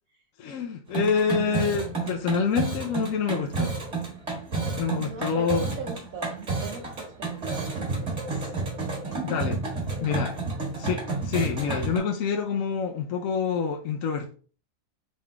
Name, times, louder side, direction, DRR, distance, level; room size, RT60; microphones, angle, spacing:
voice 1, 0.4-3.7 4.8-5.7 9.2-9.6 10.0-10.3 10.8-14.3, left 6 dB, 65° left, 0.9 m, -27 dB
sound 1, 0.9-12.0, right 3 dB, 45° right, 1.8 m, -31 dB
voice 2, 5.0-8.2 9.0-9.5 10.0-10.1 10.5-10.8, right 5 dB, 65° right, 1.0 m, -40 dB
4.1 x 3.6 x 3.2 m
omnidirectional pair, 1.7 m